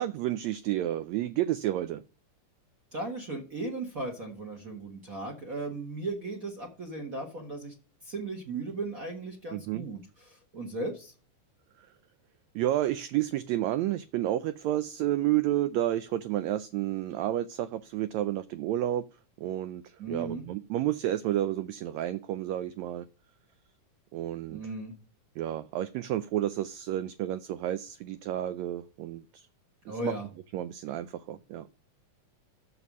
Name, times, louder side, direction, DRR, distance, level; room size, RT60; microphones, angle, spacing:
voice 1, 0.0-2.0 9.5-9.9 12.5-19.0 19.4-23.1 24.1-24.6 25.4-29.5 29.9-30.1 30.5-31.7, right 13 dB, 85° right, 1.5 m, -30 dB
voice 2, 2.9-7.7 8.0-10.0 10.3-11.1 20.0-20.4 24.5-24.9 29.8-30.3, right 2 dB, 45° right, 1.1 m, -36 dB
6.9 x 6.9 x 6.0 m
omnidirectional pair, 3.7 m